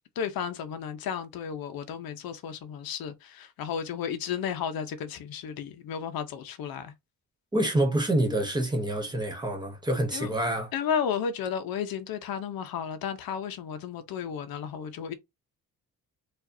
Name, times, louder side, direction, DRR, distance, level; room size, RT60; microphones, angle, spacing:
voice 1, 0.2-6.9 10.1-10.3 10.7-15.1, left 7 dB, 90° left, 0.8 m, -33 dB
voice 2, 7.5-10.7, right 1 dB, 10° right, 0.9 m, -27 dB
4.8 x 2.5 x 2.6 m
cardioid pair, 165°, 35 cm